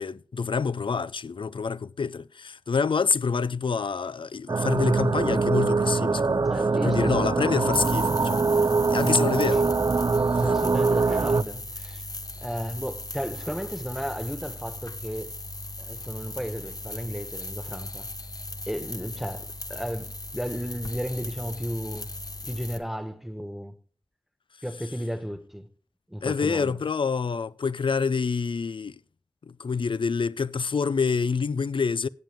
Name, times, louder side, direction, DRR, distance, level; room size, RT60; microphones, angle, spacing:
voice 1, 0.0-6.5 6.8-8.4 8.9-9.6 10.3-10.4 26.2-29.0 29.4-32.1, left 5 dB, 85° left, 0.4 m, -27 dB
sound 1, 4.5-11.4, right 4 dB, 50° right, 0.4 m, -23 dB
voice 2, 6.5-7.3 9.0-9.4 10.4-12.0 12.4-15.3 15.8-18.1 18.7-22.1 22.5-23.7 24.6-25.7 26.1-26.8, equal, 5° right, 1.4 m, -33 dB
sound 2, 7.7-22.8, left 2 dB, 50° left, 1.1 m, -38 dB
16.5 x 7.3 x 3.5 m
wide cardioid pair, 45°, 8 cm